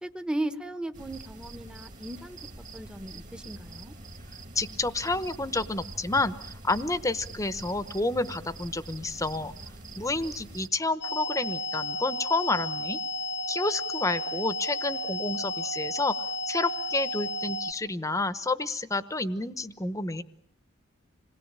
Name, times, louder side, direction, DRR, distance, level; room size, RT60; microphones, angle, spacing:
voice 1, 0.0-2.4 2.7-3.9, right 1 dB, 5° right, 8 dB, 1.2 m, -36 dB
sound 1, 0.9-10.7, right 2 dB, 40° right, 2.1 m, -44 dB
voice 2, 4.5-9.5 10.0-13.0 13.5-16.1 16.5-20.2, left 2 dB, 15° left, 13 dB, 1.1 m, -29 dB
sound 2, 11.0-17.7, left 1 dB, 55° left, 1.0 m, -33 dB
27.0 x 20.5 x 8.9 m, 0.66 s
head